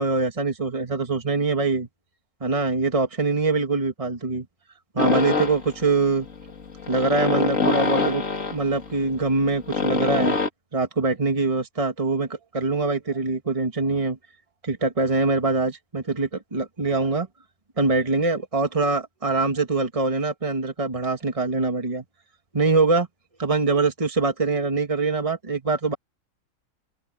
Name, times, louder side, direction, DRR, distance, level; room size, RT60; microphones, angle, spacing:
voice 1, 0.0-1.9 2.4-4.5 4.9-6.3 6.9-8.2 8.5-10.4 10.7-14.2 14.6-17.3 17.8-22.0 22.5-23.1 23.4-26.0, right 3 dB, 25° right, 2.0 m, -23 dB
sound 1, 5.0-10.5, left 4 dB, 75° left, 2.9 m, -26 dB
open air
omnidirectional pair, 1.4 m